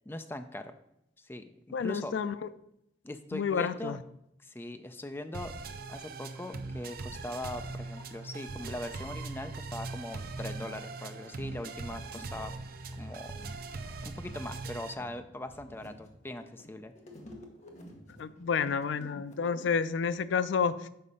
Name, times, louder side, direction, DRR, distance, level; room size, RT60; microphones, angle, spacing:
voice 1, 0.1-0.7 1.2-2.1 3.0-4.0 4.4-5.5 5.9-12.5 13.0-13.6 14.0-16.9, left 1 dB, 10° left, 8 dB, 0.4 m, -41 dB
voice 2, 1.7-2.5 3.3-4.0 18.2-20.9, left 6 dB, 80° left, 15 dB, 0.4 m, -30 dB
sound 1, 5.3-14.9, right 3 dB, 50° right, 0.5 m, -41 dB
sound 2, 7.9-8.7 9.4-20.2, left 1 dB, 40° left, 1.1 m, -50 dB
6.7 x 5.0 x 5.4 m, 0.81 s
head